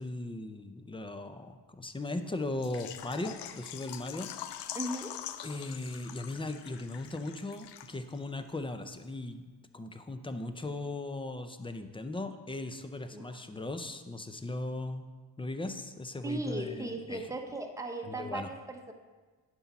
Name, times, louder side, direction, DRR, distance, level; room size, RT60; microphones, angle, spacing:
voice 1, 0.0-4.3 5.4-9.4 9.7-15.1 15.4-17.3 18.0-18.5, left 2 dB, 15° left, 8 dB, 0.5 m, -38 dB
Water / Liquid, 2.6-8.2 8.5-8.6 9.0-9.1, left 11 dB, 75° left, 0.6 m, -44 dB
voice 2, 4.7-5.1 13.1-13.2 16.2-18.9, right 1 dB, 5° right, 3 dB, 0.9 m, -37 dB
9.8 x 4.2 x 5.8 m, 1.4 s
cardioid pair, 110°, 42 cm